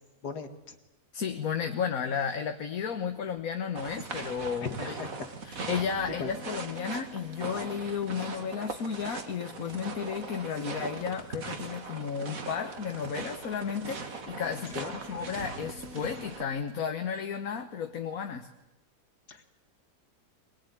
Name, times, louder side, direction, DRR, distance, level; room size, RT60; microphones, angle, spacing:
voice 1, 0.2-0.7 4.6-5.3 6.2-6.3 14.8-14.9 19.3-19.4, left 4 dB, 80° left, 8 dB, 2.5 m, -37 dB
voice 2, 1.1-5.1 5.4-18.5, left 7 dB, 65° left, 6 dB, 1.6 m, -33 dB
sound 1, 3.8-16.4, right 4 dB, 60° right, 2.3 m, -40 dB
23.0 x 20.5 x 9.5 m, 0.94 s
omnidirectional pair, 1.7 m